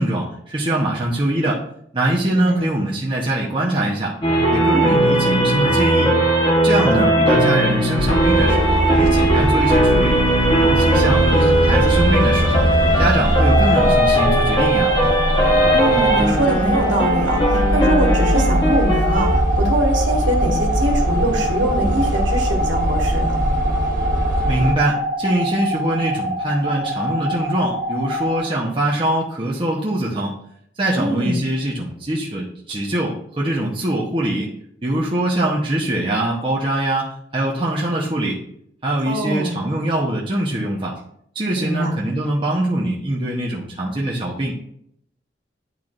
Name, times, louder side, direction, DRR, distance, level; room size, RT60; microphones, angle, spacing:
voice 1, 0.0-1.6 1.9-4.1 4.5-6.1 6.6-10.2 10.6-12.7 13.0-14.9 24.5-30.3 30.8-34.5 34.8-37.1 37.3-38.4 38.8-41.0 41.3-44.5, right 1 dB, 25° right, -5 dB, 0.9 m, -22 dB
voice 2, 2.3-2.7 4.7-5.0 6.8-7.0 15.7-23.3 30.9-31.4 39.0-39.5 41.6-41.9, right 1 dB, 85° right, 0 dB, 1.7 m, -23 dB
sound 1, 4.2-19.4, right 1 dB, 25° left, 1.1 m, -18 dB
sound 2, 8.0-24.7, equal, 45° right, 1.7 m, -22 dB
sound 3, 13.4-28.4, equal, 75° left, 2.0 m, -25 dB
10.5 x 4.5 x 2.6 m, 0.72 s
head